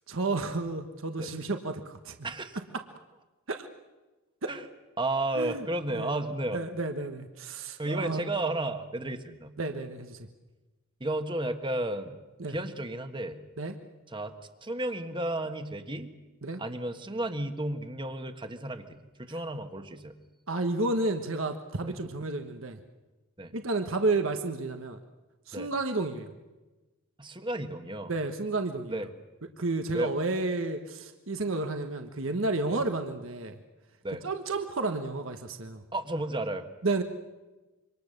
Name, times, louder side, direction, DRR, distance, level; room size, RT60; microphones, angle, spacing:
voice 1, 0.1-2.1 3.5-3.7 5.3-6.2 6.5-8.2 9.6-10.2 12.4-12.6 13.6-13.7 16.4-16.6 20.5-22.8 23.5-25.0 25.5-26.3 28.1-29.0 29.6-33.6 34.2-35.8 36.8-37.0, right 2 dB, 65° right, 6 dB, 1.4 m, -31 dB
voice 2, 2.2-2.6 4.5-4.6 5.0-6.6 7.8-9.5 11.0-12.1 12.5-13.4 14.1-14.3 14.6-16.1 16.6-20.1 21.9-22.0 23.4-23.6 25.5-25.7 27.2-28.1 28.9-29.1 29.9-30.2 32.7-32.8 34.0-34.2 35.9-36.7, right 1 dB, 25° right, 7 dB, 1.5 m, -33 dB
26.5 x 24.5 x 6.7 m, 1.1 s
head